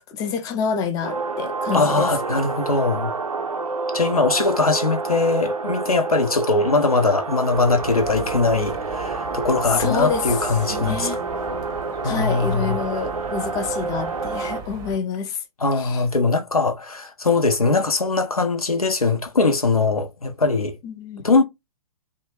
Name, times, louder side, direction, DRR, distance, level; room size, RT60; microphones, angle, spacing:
voice 1, 0.1-2.1 9.8-11.2 12.0-15.4 15.8-16.0 20.8-21.2, left 6 dB, 20° left, 0.5 m, -27 dB
sound 1, 1.0-14.6, right 4 dB, 90° right, 0.5 m, -28 dB
voice 2, 1.7-3.1 3.9-11.1 12.0-12.8 15.6-20.7 21.2-21.4, left 3 dB, 90° left, 0.6 m, -21 dB
sound 2, 7.5-15.0, right 3 dB, 20° right, 0.6 m, -38 dB
2.7 x 2.2 x 3.0 m
figure-of-eight pair, 115°, 18 cm